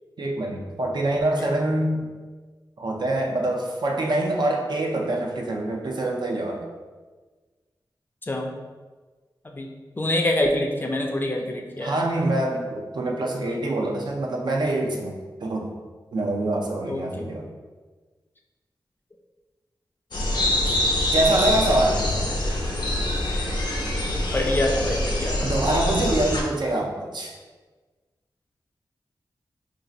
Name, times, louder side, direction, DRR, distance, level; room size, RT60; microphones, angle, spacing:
voice 1, 0.2-2.1 2.8-6.7 11.8-15.7 16.1-17.5 21.1-22.2 25.4-27.3, right 1 dB, 70° right, 0 dB, 0.5 m, -25 dB
voice 2, 10.0-12.0 16.9-17.3 24.3-25.5, left 1 dB, 25° left, 1 dB, 0.4 m, -25 dB
sound 1, 20.1-26.4, left 1 dB, 70° left, 0.6 m, -25 dB
2.6 x 2.4 x 4.0 m, 1.3 s
wide cardioid pair, 85°, 8 cm